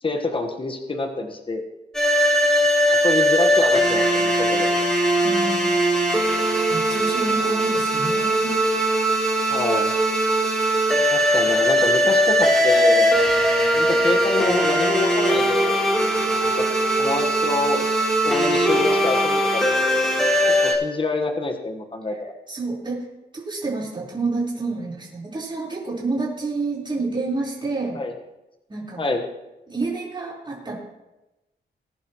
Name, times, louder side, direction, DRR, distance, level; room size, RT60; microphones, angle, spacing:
voice 1, 0.0-1.6 3.0-4.7 9.5-9.9 11.1-13.2 13.7-15.8 16.4-16.6 17.0-20.0 20.6-22.1 27.9-28.1 29.0-29.2, left 2 dB, 30° left, 4 dB, 1.4 m, -26 dB
sound 1, 1.9-20.7, equal, 5° left, 3.5 m, -20 dB
voice 2, 5.2-5.7 6.7-8.6 22.1-22.2 22.5-23.0 23.3-28.0 28.7-29.0 29.7-30.8, right 3 dB, 25° right, -5 dB, 4.4 m, -28 dB
20.5 x 10.5 x 3.1 m, 1.0 s
wide cardioid pair, 105°, 18 cm